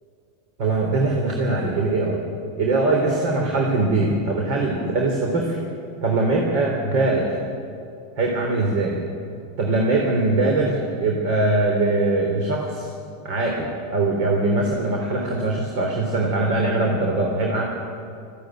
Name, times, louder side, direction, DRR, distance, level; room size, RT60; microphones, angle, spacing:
voice 1, 0.6-2.2 2.6-5.6 6.0-7.4 8.2-9.0 9.6-12.9 13.2-17.6, right 2 dB, 60° right, 1 dB, 3.7 m, -22 dB
19.5 x 16.0 x 9.3 m, 2.5 s
supercardioid pair, 135°, 0 cm